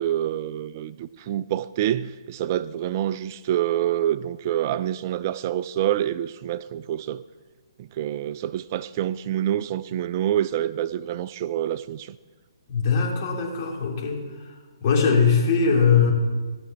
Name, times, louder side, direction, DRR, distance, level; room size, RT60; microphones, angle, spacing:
voice 1, 0.0-7.2 7.8-12.2, right 11 dB, 35° right, 0.3 m, -27 dB
voice 2, 12.7-14.2 14.8-16.1, left 5 dB, 40° left, 3.1 m, -20 dB
16.0 x 6.1 x 7.0 m
figure-of-eight pair, 130°, 3 cm